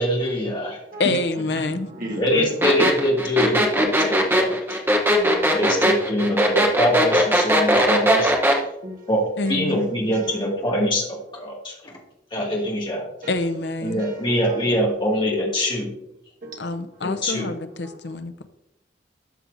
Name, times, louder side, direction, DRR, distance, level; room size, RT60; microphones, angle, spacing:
voice 1, 0.0-0.8 2.2-4.8 5.5-8.3 9.1-9.2 9.5-12.0 12.3-13.1 13.8-15.9 17.0-17.5, equal, 25° left, 2.1 m, -24 dB
voice 2, 1.0-1.9 9.4-9.9 13.3-14.0 16.6-18.5, left 2 dB, 65° left, 0.6 m, -26 dB
voice 3, 1.5-2.5 4.4-4.5 5.2-5.6 6.2-6.3 8.5-9.1 9.5-10.5 12.4-12.5 13.2-13.4 13.8-14.6 16.4-16.8 17.4-17.6 17.8-18.2, equal, 45° right, 1.8 m, -35 dB
sound 1, 2.6-8.6, equal, 10° right, 0.9 m, -19 dB
12.5 x 6.2 x 2.7 m
head